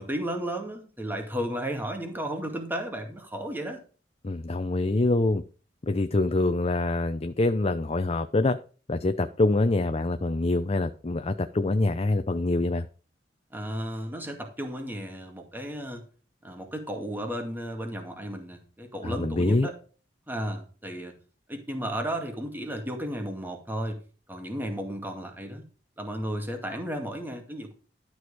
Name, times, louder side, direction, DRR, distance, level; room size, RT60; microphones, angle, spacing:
voice 1, 0.0-3.8 13.5-16.0 16.4-19.7 20.3-21.2 21.5-24.0 24.3-25.6 26.0-27.7, equal, 10° right, 2.2 m, -34 dB
voice 2, 4.2-5.4 5.8-8.6 8.9-12.9 19.0-19.7, left 2 dB, 35° left, 0.6 m, -25 dB
12.0 x 6.3 x 4.9 m
head